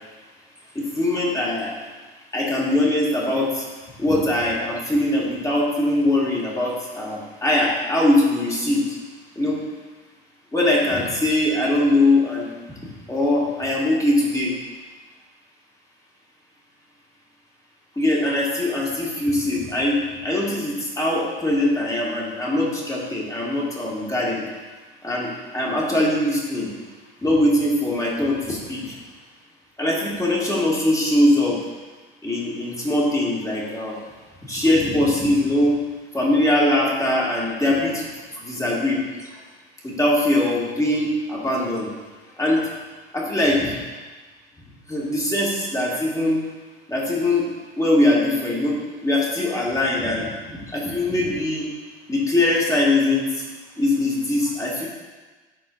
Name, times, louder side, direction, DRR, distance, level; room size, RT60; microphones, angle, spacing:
voice 1, 0.8-1.7 2.3-3.6 4.0-8.8 9.4-9.6 10.5-12.5 12.8-14.5 18.0-24.4 25.0-25.3 25.5-26.7 27.2-28.8 29.8-31.6 32.2-33.9 34.5-35.8 36.1-38.1 38.4-39.0 39.8-41.9 42.4-42.7 43.1-43.7 44.9-46.4 46.9-47.4 47.8-48.8 49.0-51.7 52.1-53.2 53.8-54.9, left 1 dB, 10° left, -4 dB, 2.1 m, -21 dB
11.5 x 4.3 x 2.6 m, 1.3 s
hypercardioid pair, 75°, 30 cm